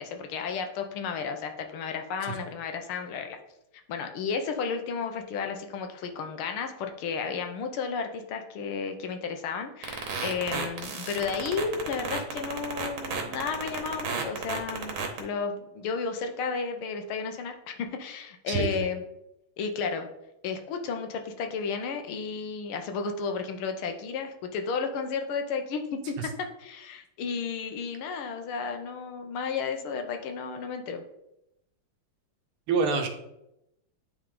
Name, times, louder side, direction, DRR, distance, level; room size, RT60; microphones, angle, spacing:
voice 1, 0.0-3.4 3.9-19.0 19.6-20.1 20.4-26.3 26.6-31.0, left 5 dB, 80° left, 6 dB, 1.6 m, -33 dB
sound 1, 9.8-15.2, right 5 dB, 70° right, 1.8 m, -32 dB
voice 2, 18.5-18.8 32.7-33.1, right 5 dB, 85° right, 3 dB, 1.9 m, -26 dB
9.6 x 3.8 x 3.7 m, 0.86 s
omnidirectional pair, 2.4 m